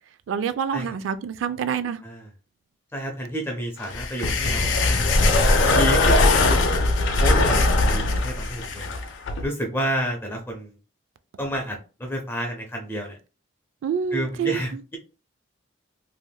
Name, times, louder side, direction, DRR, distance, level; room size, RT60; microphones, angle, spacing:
voice 1, 0.3-2.0 13.8-14.6, right 7 dB, 80° right, 0.3 m, -26 dB
voice 2, 2.9-5.0 5.7-6.5 7.2-9.0 9.4-10.8 11.4-13.2 14.1-15.0, right 1 dB, 10° left, 0.5 m, -30 dB
sound 1, 3.8-9.5, left 2 dB, 75° left, 0.5 m, -20 dB
3.3 x 2.5 x 2.2 m
head